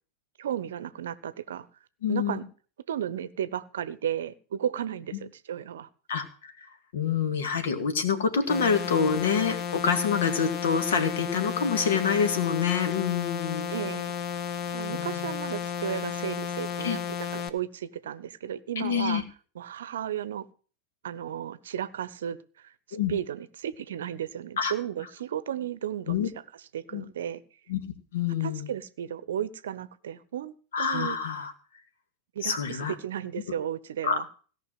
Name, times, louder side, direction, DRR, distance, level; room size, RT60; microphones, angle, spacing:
voice 1, 0.4-1.7 2.1-2.4 2.9-5.9 13.7-14.1 14.7-19.2 19.5-20.5 21.0-26.2 26.7-27.4 28.4-31.2 32.3-34.3, right 10 dB, 60° right, 0.8 m, -34 dB
voice 2, 2.0-2.4 5.1-5.2 6.1-6.7 6.9-13.7 14.9-15.3 16.8-17.0 18.8-19.2 22.9-23.1 24.6-24.7 26.1-26.3 26.9-27.0 27.7-27.8 28.1-28.7 30.7-31.5 32.4-32.9 34.0-34.2, left 6 dB, 60° left, 2.0 m, -27 dB
sound 1, 8.5-17.5, left 8 dB, 35° left, 0.9 m, -33 dB
17.0 x 5.8 x 7.6 m
figure-of-eight pair, 90°, 0 cm